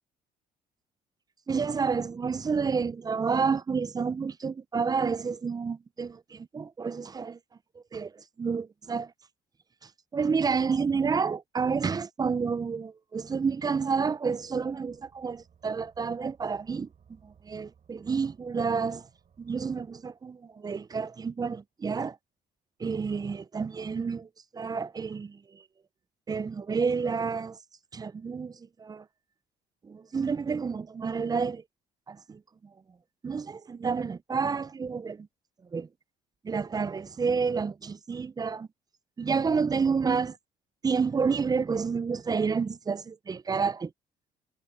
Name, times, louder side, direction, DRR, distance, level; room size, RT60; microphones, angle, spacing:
voice 1, 1.5-7.4 7.9-9.1 9.8-19.1 19.4-22.2 22.8-25.6 26.3-27.6 27.9-29.1 29.8-31.6 32.1-32.4 33.2-35.3 35.7-35.9 36.4-38.7 39.2-40.4 40.8-43.9, right 5 dB, 25° right, 0.4 m, -30 dB
sound 1, 14.4-21.0, right 7 dB, 50° right, 3.1 m, -62 dB
supercardioid pair, 80°, 16 cm